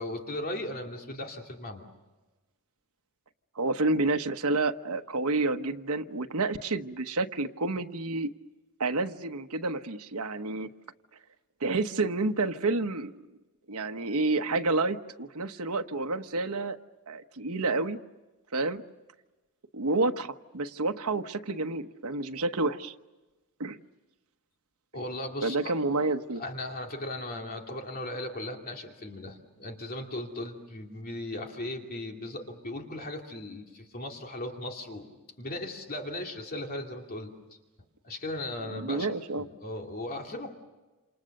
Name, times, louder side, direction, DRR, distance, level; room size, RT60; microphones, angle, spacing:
voice 1, 0.0-1.9 24.9-25.7 26.4-37.3 38.0-39.1 39.4-40.5, left 1 dB, 45° left, 2 dB, 2.5 m, -37 dB
voice 2, 3.5-8.3 8.8-10.7 11.6-13.1 13.7-16.8 17.1-18.0 18.5-18.8 19.7-22.9 23.6-23.8 25.4-26.4 38.7-39.5, right 3 dB, 85° right, 7 dB, 1.2 m, -29 dB
28.5 x 28.0 x 6.6 m, 1.2 s
head